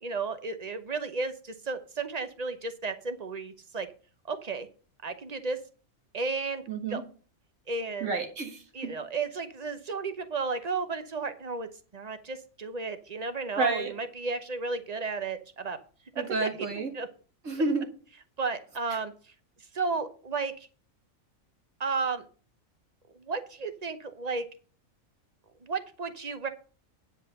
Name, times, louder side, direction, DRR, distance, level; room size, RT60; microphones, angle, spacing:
voice 1, 0.0-3.9 4.3-4.7 5.0-5.6 6.1-6.6 6.9-7.0 7.7-8.1 8.7-15.8 16.1-16.5 16.8-17.1 18.4-19.1 19.7-20.7 21.8-22.3 23.2-24.5 25.6-26.5, right 4 dB, 35° right, 10 dB, 0.8 m, -33 dB
voice 2, 6.7-7.0 8.0-8.9 13.6-13.9 16.2-16.9 17.4-17.9 18.9-19.0, right 3 dB, 65° right, 5 dB, 1.9 m, -30 dB
9.8 x 5.3 x 6.6 m, 0.40 s
omnidirectional pair, 1.4 m